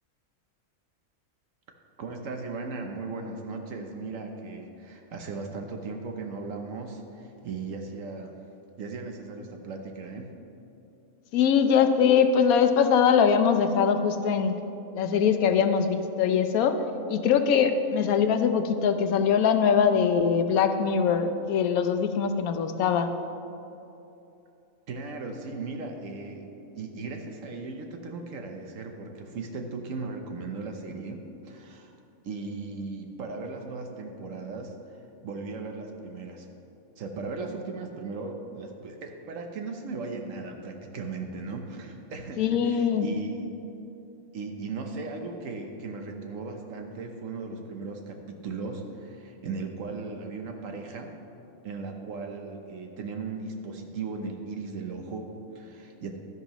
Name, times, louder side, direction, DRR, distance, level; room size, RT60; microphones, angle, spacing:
voice 1, 2.0-8.3 8.8-10.3 24.9-26.5 26.8-31.9 32.2-36.5 37.0-43.5 44.3-51.1 51.6-56.2, right 3 dB, 65° right, 3 dB, 1.2 m, -37 dB
voice 2, 11.3-14.5 14.9-16.8 17.1-23.1 42.4-43.0, left 7 dB, 80° left, 8 dB, 1.1 m, -22 dB
12.5 x 10.5 x 3.0 m, 2.8 s
omnidirectional pair, 1.5 m